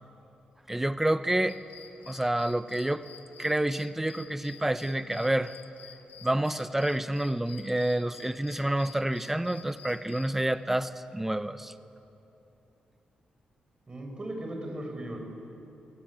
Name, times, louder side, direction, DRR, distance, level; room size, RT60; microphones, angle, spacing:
voice 1, 0.7-1.6 2.1-3.0 3.4-5.5 6.2-11.7, right 1 dB, 10° right, 12 dB, 0.9 m, -28 dB
sound 1, 1.5-10.4, left 9 dB, 85° left, 1.6 m, -51 dB
voice 2, 13.9-15.2, right 1 dB, 30° right, 2 dB, 6.3 m, -37 dB
29.0 x 18.0 x 8.8 m, 2.9 s
cardioid pair, 85°, 3 cm